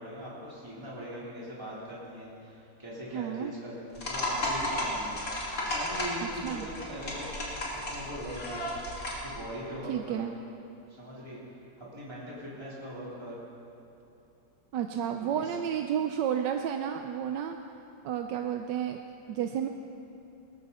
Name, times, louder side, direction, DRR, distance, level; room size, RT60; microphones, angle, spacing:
voice 1, 0.0-8.6 9.2-10.2 10.9-13.4 15.2-15.6, equal, 15° right, -8 dB, 3.9 m, -41 dB
voice 2, 3.1-3.5 6.4-6.7 9.9-10.3 14.7-17.6 18.0-19.0 19.3-19.7, right 9 dB, 85° right, 5 dB, 1.3 m, -31 dB
sound 1, 3.9-9.3, left 1 dB, 50° left, 3.0 m, -34 dB
21.0 x 13.5 x 4.2 m, 2.7 s
omnidirectional pair, 1.9 m